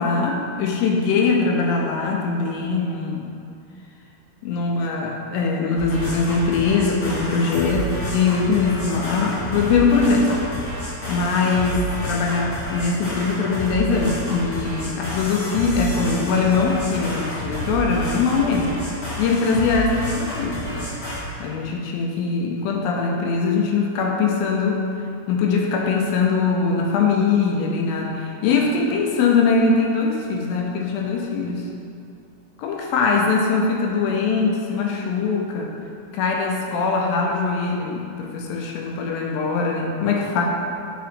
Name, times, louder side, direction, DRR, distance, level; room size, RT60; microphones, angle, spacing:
voice 1, 0.0-3.3 4.4-10.4 11.1-18.8 19.2-20.9 21.4-24.8 25.3-31.6 32.6-35.7 36.1-40.4, left 4 dB, 75° left, 0 dB, 2.3 m, -22 dB
sound 1, 5.7-21.2, equal, 50° left, 2.6 m, -30 dB
7.5 x 3.9 x 5.2 m, 2.5 s
omnidirectional pair, 4.4 m